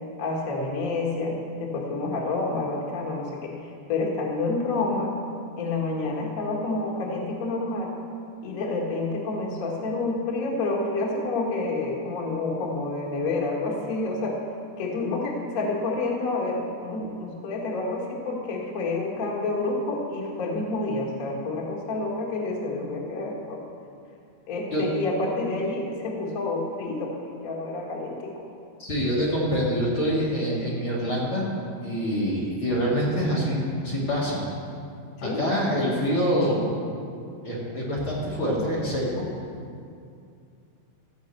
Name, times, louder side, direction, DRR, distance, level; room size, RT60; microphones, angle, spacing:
voice 1, 0.2-3.5 3.9-5.1 5.6-7.9 8.4-14.4 14.8-23.6 24.5-28.4 35.2-35.5, left 3 dB, 80° left, -2 dB, 0.7 m, -28 dB
voice 2, 28.8-31.5 31.8-34.4 35.2-36.6 37.4-39.1, equal, 40° left, -6 dB, 2.5 m, -25 dB
15.5 x 5.3 x 8.1 m, 2.4 s
omnidirectional pair, 4.7 m